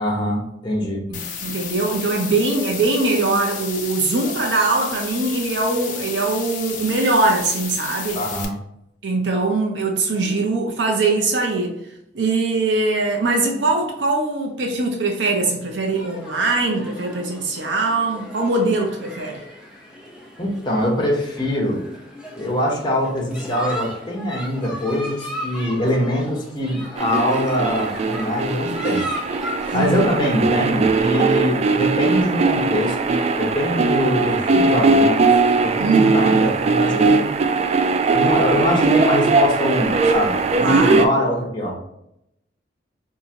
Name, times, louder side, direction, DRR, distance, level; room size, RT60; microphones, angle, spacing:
voice 1, 0.0-1.1 8.1-8.5 20.4-21.8 22.4-29.1 29.4-35.3 35.6-37.3 38.1-41.8, left 1 dB, 25° left, -2 dB, 1.1 m, -23 dB
sound 1, 1.1-8.4, left 6 dB, 45° left, 0.7 m, -32 dB
voice 2, 1.1-8.2 9.0-11.8 12.1-19.4 29.7-30.1 35.8-36.4 40.6-41.0, right 3 dB, 75° right, 1 dB, 0.7 m, -21 dB
sound 2, 15.9-30.7, equal, 5° right, 0.8 m, -36 dB
sound 3, 27.0-41.1, right 3 dB, 35° right, 0.3 m, -19 dB
4.7 x 2.8 x 2.8 m, 0.79 s
head